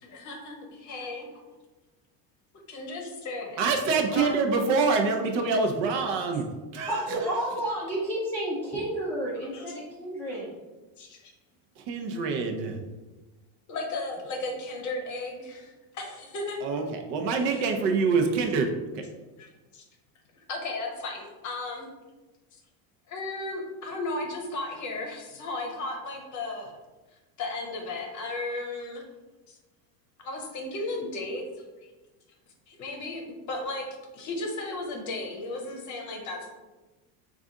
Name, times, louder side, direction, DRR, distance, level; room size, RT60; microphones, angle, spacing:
voice 1, 0.0-1.2 2.7-3.6 4.1-4.3 9.5-9.7 10.3-10.4 11.0-11.3 13.7-16.6 17.5-17.6 19.4-19.8 20.4-21.9 23.1-26.7 27.4-29.0 29.5-29.6 30.2-31.6 32.7-33.2 33.5-33.9 34.1-36.5, left 2 dB, 40° left, 2 dB, 0.8 m, -35 dB
voice 2, 3.6-6.5 6.7-7.4 11.8-12.8 16.6-19.0, right 4 dB, 60° right, 4 dB, 0.7 m, -26 dB
voice 3, 6.9-10.5, right 1 dB, 5° left, -7 dB, 0.4 m, -31 dB
4.0 x 2.5 x 3.6 m, 1.2 s
cardioid pair, 140°, 47 cm